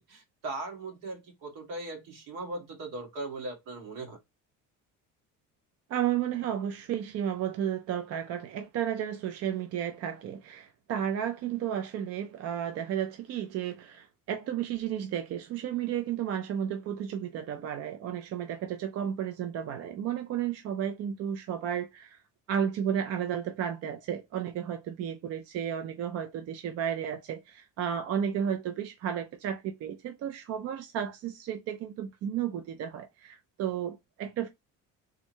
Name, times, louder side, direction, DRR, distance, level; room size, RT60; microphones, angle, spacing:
voice 1, 0.0-4.2, right 2 dB, 75° right, 1.8 m, -39 dB
voice 2, 5.9-22.2 22.5-34.5, right 9 dB, 50° right, 0.5 m, -33 dB
3.6 x 2.1 x 4.4 m
cardioid pair, 150°, 33 cm